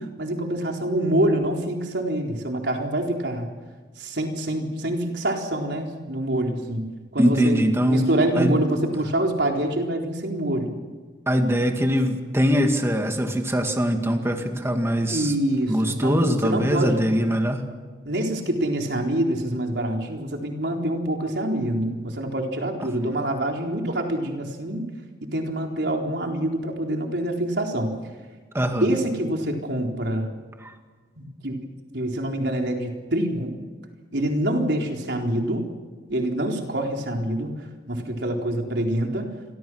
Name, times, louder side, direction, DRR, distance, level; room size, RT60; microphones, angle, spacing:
voice 1, 0.0-3.5 4.0-6.9 7.1-7.6 7.9-10.8 15.1-17.0 18.0-24.9 25.2-27.9 28.8-30.3 31.2-31.6 31.9-33.6 34.1-35.7 36.1-37.5 37.9-39.3, right 1 dB, 80° right, 2 dB, 4.1 m, -26 dB
voice 2, 7.2-8.1 8.4-8.6 11.3-15.3 15.7-17.6 28.5-28.9 30.6-30.7, equal, 15° right, 4 dB, 2.0 m, -22 dB
29.0 x 24.0 x 6.3 m, 1.5 s
head